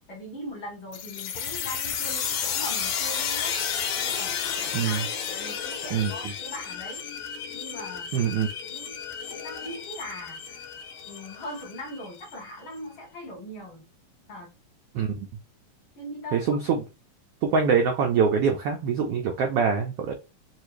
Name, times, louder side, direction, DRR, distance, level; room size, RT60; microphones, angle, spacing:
voice 1, 0.1-3.6 4.0-7.1 7.5-8.2 8.6-9.0 9.3-10.7 11.0-13.8 14.3-14.6 16.0-16.6, left 1 dB, 50° left, -2 dB, 1.7 m, -40 dB
sound 1, 0.9-12.3, left 7 dB, 75° left, 2.0 m, -32 dB
voice 2, 4.7-5.1 5.9-6.1 8.1-8.5 14.9-15.3 16.3-16.8 17.4-20.1, right 6 dB, 85° right, 2 dB, 1.3 m, -24 dB
4.7 x 2.5 x 3.1 m, 0.28 s
omnidirectional pair, 3.5 m